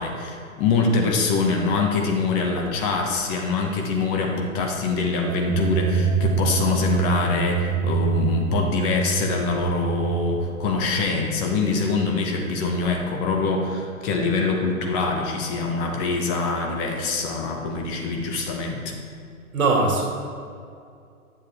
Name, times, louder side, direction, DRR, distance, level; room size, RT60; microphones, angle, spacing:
voice 1, 0.0-18.9, left 4 dB, 30° left, 2 dB, 1.2 m, -24 dB
sound 1, 5.3-11.7, right 5 dB, 35° right, 0.7 m, -26 dB
voice 2, 19.5-20.0, right 3 dB, 75° right, 0 dB, 2.2 m, -21 dB
9.2 x 7.6 x 3.5 m, 2.3 s
hypercardioid pair, 115°, 42 cm